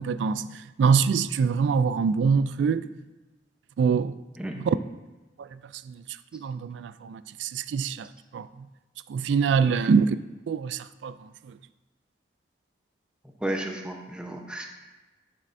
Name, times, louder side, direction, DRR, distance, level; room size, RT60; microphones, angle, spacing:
voice 1, 0.0-2.9 3.8-4.2 4.6-4.8 5.4-5.6 5.9-6.0 6.3-8.5 9.1-10.2 10.5-11.6, right 5 dB, 90° right, 0.3 m, -25 dB
voice 2, 13.4-14.6, right 1 dB, 5° right, 0.8 m, -32 dB
10.5 x 6.6 x 2.6 m
head